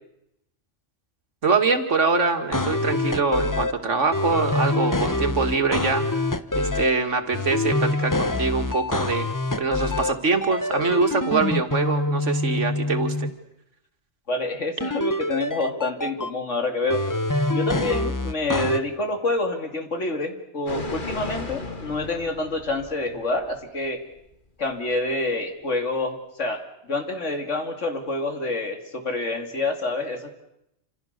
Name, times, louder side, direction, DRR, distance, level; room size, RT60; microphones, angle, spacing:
voice 1, 1.4-6.1 6.6-9.3 9.6-13.3, right 4 dB, 85° right, 6 dB, 2.4 m, -24 dB
sound 1, 2.5-3.7 4.1-6.9 7.3-10.1 10.4-13.3 14.8-16.3 16.9-18.8, left 2 dB, 20° left, 0.9 m, -25 dB
voice 2, 14.3-17.0 17.5-24.0 24.6-30.4, left 2 dB, 85° left, 5 dB, 3.0 m, -27 dB
sound 2, 20.7-23.6 23.8-23.9, left 3 dB, 45° left, 2.1 m, -35 dB
28.5 x 27.0 x 6.7 m, 0.82 s
omnidirectional pair, 1.2 m